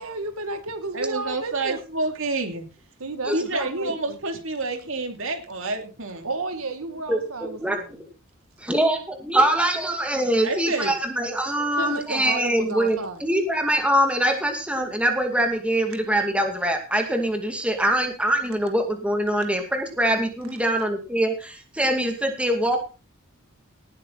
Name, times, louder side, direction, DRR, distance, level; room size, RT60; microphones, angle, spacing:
voice 1, 0.0-1.8 3.0-3.9 6.2-7.9 11.8-13.2, right 2 dB, 85° right, 7 dB, 2.1 m, -32 dB
voice 2, 0.9-2.6 3.3-6.3 10.4-10.9, right 3 dB, 65° right, 5 dB, 2.8 m, -28 dB
voice 3, 7.1-8.1 8.7-22.8, right 1 dB, 5° right, 3 dB, 2.4 m, -23 dB
18.5 x 8.6 x 4.1 m, 0.33 s
head